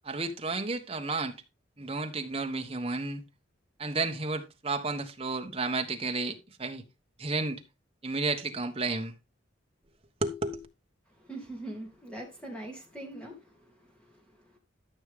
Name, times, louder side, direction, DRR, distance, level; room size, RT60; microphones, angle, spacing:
voice 1, 0.0-1.4 1.8-3.2 3.8-6.8 7.2-7.6 8.0-9.1 10.2-10.7, right 3 dB, 30° right, 1.2 m, -32 dB
voice 2, 11.2-14.6, right 1 dB, 5° left, 2.9 m, -43 dB
13.5 x 6.3 x 3.6 m
head